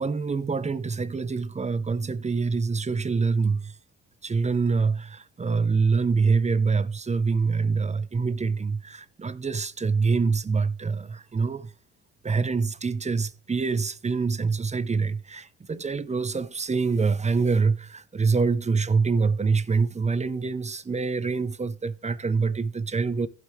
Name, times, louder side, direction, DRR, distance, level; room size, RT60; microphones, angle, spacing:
voice 1, 0.0-3.8 4.2-11.7 12.2-23.3, right 4 dB, 20° right, 0.7 m, -25 dB
15.0 x 5.5 x 3.3 m
hypercardioid pair, 60°, 35 cm